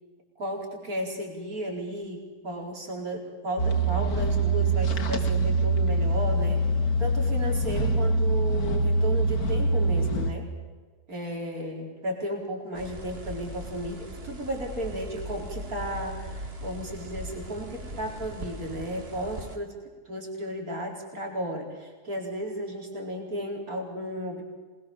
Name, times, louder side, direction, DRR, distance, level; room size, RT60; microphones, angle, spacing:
voice 1, 0.4-6.6 7.0-10.5 11.1-19.7 20.0-24.4, equal, 65° right, 0 dB, 5.0 m, -34 dB
sound 1, 3.6-10.3, right 2 dB, 65° left, 2.1 m, -24 dB
sound 2, 12.7-19.6, right 1 dB, 40° right, 2.1 m, -39 dB
26.0 x 22.0 x 7.1 m, 1.4 s
omnidirectional pair, 1.7 m